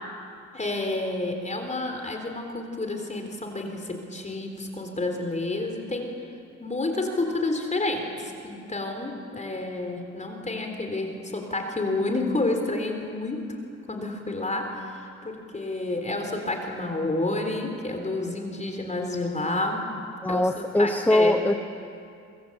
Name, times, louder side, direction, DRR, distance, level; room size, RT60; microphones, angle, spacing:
voice 1, 0.5-6.1 6.6-13.4 13.9-19.9 20.3-21.4, left 2 dB, 25° left, 4 dB, 4.0 m, -29 dB
voice 2, 20.2-21.6, left 1 dB, 5° left, 7 dB, 1.2 m, -22 dB
26.5 x 25.0 x 8.2 m, 2.4 s
cardioid pair, 90°, 30 cm